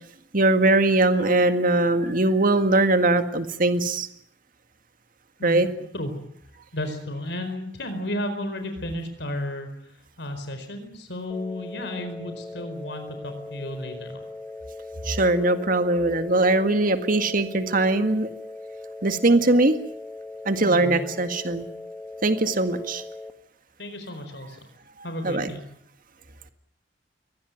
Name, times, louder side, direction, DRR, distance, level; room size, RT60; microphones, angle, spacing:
voice 1, 0.3-4.1 5.4-5.7 15.0-18.3 19.0-19.8 20.5-21.7 22.2-23.0 25.2-25.6, right 2 dB, 50° right, 9 dB, 1.9 m, -21 dB
voice 2, 5.4-6.1 6.7-9.7 10.2-14.2 20.6-21.0 23.8-24.6 25.0-25.6, left 1 dB, 70° left, 7 dB, 4.6 m, -33 dB
sound 1, 11.3-23.3, left 2 dB, ahead, 1.9 m, -39 dB
23.5 x 19.0 x 9.5 m, 0.69 s
head